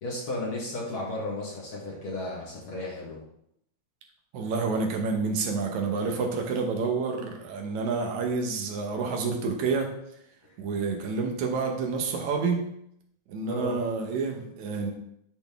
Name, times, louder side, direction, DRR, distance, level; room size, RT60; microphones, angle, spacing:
voice 1, 0.0-3.2 10.4-10.6 13.4-13.8, left 2 dB, 50° left, -3 dB, 2.0 m, -34 dB
voice 2, 4.3-9.9 10.6-12.7 13.3-14.9, right 4 dB, 75° right, 2 dB, 2.3 m, -28 dB
10.5 x 3.9 x 3.5 m, 0.75 s
omnidirectional pair, 3.4 m